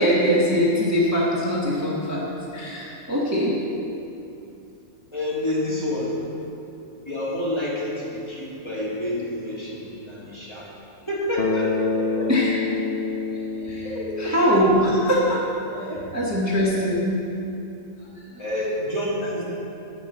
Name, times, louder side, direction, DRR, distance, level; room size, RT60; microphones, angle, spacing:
voice 1, 0.0-2.2 2.5-3.5 12.3-12.6 13.6-13.9 14.2-15.4 15.8-15.9 16.1-17.2 18.0-18.4, equal, 10° right, -6 dB, 1.3 m, -22 dB
voice 2, 5.1-6.3 7.1-10.7 11.1-12.3 13.8-14.3 15.6-16.1 18.4-19.4, left 1 dB, 20° left, -6 dB, 1.8 m, -28 dB
Bass guitar, 11.4-15.4, left 4 dB, 55° left, 0.8 m, -28 dB
10.5 x 5.3 x 7.8 m, 2.8 s
omnidirectional pair, 1.4 m